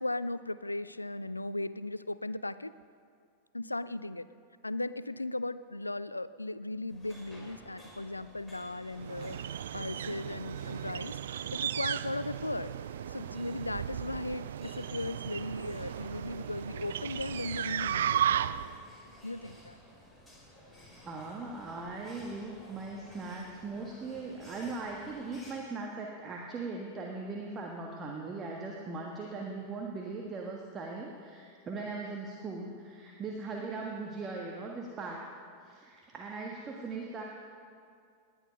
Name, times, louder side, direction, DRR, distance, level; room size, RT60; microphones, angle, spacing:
voice 1, 0.0-2.7 3.5-4.3 4.6-12.7 13.1-18.2 19.2-19.8, left 2 dB, 85° left, 16 dB, 0.4 m, -37 dB
sound 1, 6.9-25.5, equal, ahead, 4.4 m, -55 dB
sound 2, 9.0-18.8, right 10 dB, 60° right, 0.3 m, -35 dB
voice 2, 21.0-35.3 35.6-37.2, right 3 dB, 25° right, -1 dB, 1.5 m, -39 dB
19.0 x 10.5 x 5.3 m, 2.2 s
figure-of-eight pair, 90°, 0 cm